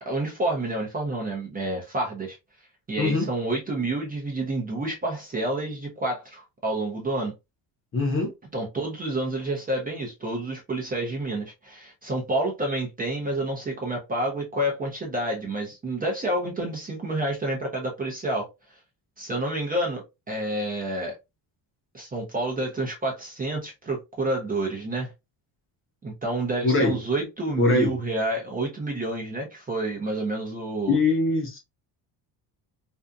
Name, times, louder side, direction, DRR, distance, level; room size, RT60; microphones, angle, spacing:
voice 1, 0.0-2.4 2.9-7.3 8.5-18.5 19.2-21.2 21.9-25.1 26.0-31.0, right 2 dB, 20° right, 0.6 m, -29 dB
voice 2, 3.0-3.3 7.9-8.3 26.6-27.0 27.6-28.0 30.9-31.6, left 3 dB, 30° left, 0.8 m, -22 dB
2.6 x 2.4 x 2.3 m
cardioid pair, 135°, 44 cm